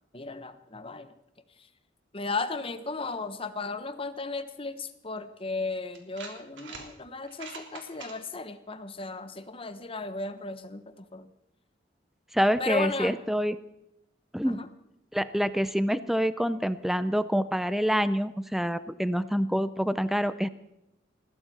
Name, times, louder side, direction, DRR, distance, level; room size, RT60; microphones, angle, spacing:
voice 1, 0.1-1.1 2.1-11.3 12.6-13.2 14.4-14.7, left 3 dB, 30° left, 11 dB, 1.1 m, -35 dB
sound 1, 5.2-5.3 5.9-6.9 7.2-8.1, right 4 dB, 90° right, 3.6 m, -43 dB
voice 2, 12.3-13.6 14.3-14.7 15.1-20.5, equal, ahead, 13 dB, 0.5 m, -26 dB
20.5 x 15.5 x 4.3 m, 0.88 s
head